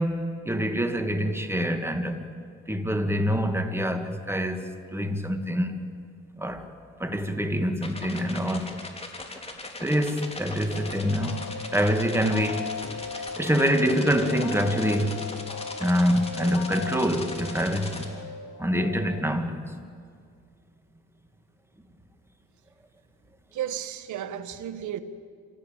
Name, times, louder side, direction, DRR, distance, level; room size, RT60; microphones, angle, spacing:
voice 1, 0.0-2.2 2.7-5.8 6.3-6.7 7.0-8.7 9.8-11.4 11.7-12.7 13.2-15.2 15.8-18.1 18.6-19.6, equal, 10° right, 2.1 m, -26 dB
sound 1, 7.8-18.1, left 2 dB, 20° left, 3.4 m, -40 dB
sound 2, 10.7-19.2, left 6 dB, 90° left, 1.1 m, -38 dB
voice 2, 23.5-25.0, right 10 dB, 75° right, 1.4 m, -33 dB
26.5 x 17.5 x 9.0 m
cardioid pair, 90°, 30 cm